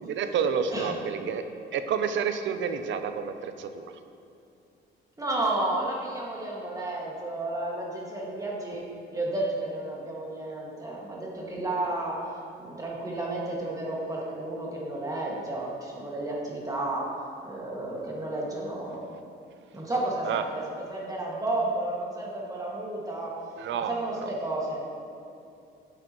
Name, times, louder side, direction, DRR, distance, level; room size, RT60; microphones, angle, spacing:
voice 1, 0.0-1.4 1.7-3.9 20.2-20.4 23.6-23.9 24.2-24.3, right 7 dB, 70° right, 9 dB, 0.6 m, -29 dB
voice 2, 5.2-12.2 12.6-17.1 17.4-19.1 19.7-23.3 23.7-24.8, right 2 dB, 15° right, -4 dB, 2.1 m, -32 dB
9.7 x 7.5 x 3.1 m, 2.6 s
cardioid pair, 90°, 20 cm